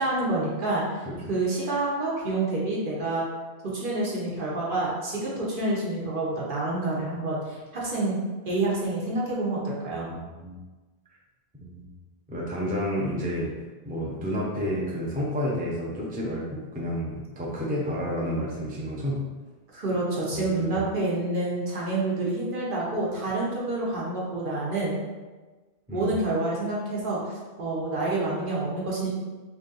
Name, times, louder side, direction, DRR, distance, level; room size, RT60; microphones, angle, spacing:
voice 1, 0.0-1.0 1.3-3.2 3.7-8.2 8.5-10.1 19.7-25.0 25.9-29.1, right 2 dB, 55° right, -5 dB, 1.0 m, -28 dB
voice 2, 10.1-10.6 11.6-11.9 12.3-13.5 13.8-19.3 20.3-20.8 25.9-26.1, equal, 10° right, -5 dB, 0.5 m, -30 dB
3.3 x 2.6 x 3.8 m, 1.3 s
omnidirectional pair, 1.1 m